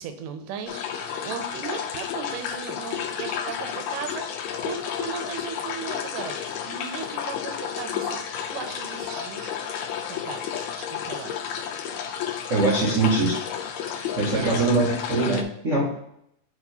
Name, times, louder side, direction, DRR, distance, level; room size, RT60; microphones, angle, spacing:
voice 1, 0.0-11.4 14.3-14.7, right 7 dB, 85° right, 7 dB, 2.2 m, -37 dB
sound 1, 0.7-15.4, left 8 dB, 80° left, 1.5 m, -32 dB
voice 2, 12.5-13.5 13.9-16.0, right 2 dB, 70° right, -5 dB, 0.7 m, -23 dB
4.8 x 4.8 x 5.6 m, 0.74 s
omnidirectional pair, 3.8 m